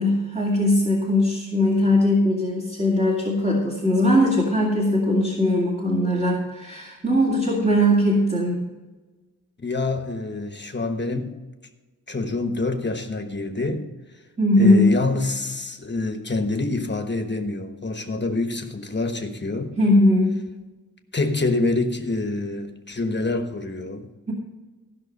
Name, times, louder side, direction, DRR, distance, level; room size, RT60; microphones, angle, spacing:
voice 1, 0.0-8.6 14.4-15.0 19.8-20.4, left 1 dB, 20° right, -4 dB, 2.1 m, -20 dB
voice 2, 9.6-11.4 12.1-13.9 14.6-19.7 21.1-24.1, left 3 dB, 30° left, 6 dB, 1.2 m, -26 dB
15.0 x 6.1 x 5.3 m, 1.2 s
wide cardioid pair, 90°, 36 cm